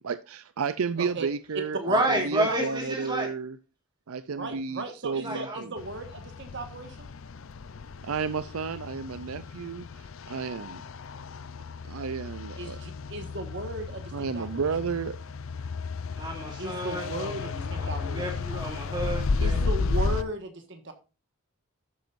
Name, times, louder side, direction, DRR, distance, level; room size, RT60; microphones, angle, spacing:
voice 1, 0.0-3.6 4.1-5.7 8.0-10.8 11.9-12.8 14.1-15.2, right 5 dB, 75° right, 0.5 m, -32 dB
voice 2, 1.8-3.3 5.2-5.6 16.2-19.6 20.2-20.3, right 1 dB, 20° right, 3.0 m, -30 dB
voice 3, 2.3-3.1 4.3-7.1 12.6-14.7 16.6-18.2 19.4-20.9, right 2 dB, 55° right, 1.6 m, -36 dB
sound 1, 5.8-20.2, left 4 dB, 65° left, 0.6 m, -33 dB
12.5 x 7.5 x 2.6 m
head